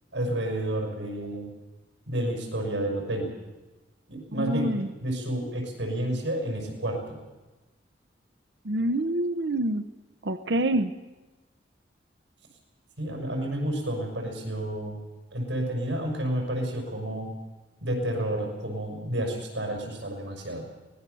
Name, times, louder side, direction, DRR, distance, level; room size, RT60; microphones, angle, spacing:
voice 1, 0.1-1.5 2.1-3.3 4.1-4.7 5.0-7.2 13.0-15.0 15.3-17.3 17.8-20.7, right 1 dB, 90° right, 2 dB, 6.3 m, -30 dB
voice 2, 4.3-4.9 8.6-9.8 10.2-10.9, right 1 dB, 70° right, 11 dB, 0.8 m, -26 dB
24.0 x 19.0 x 6.9 m, 1.2 s
head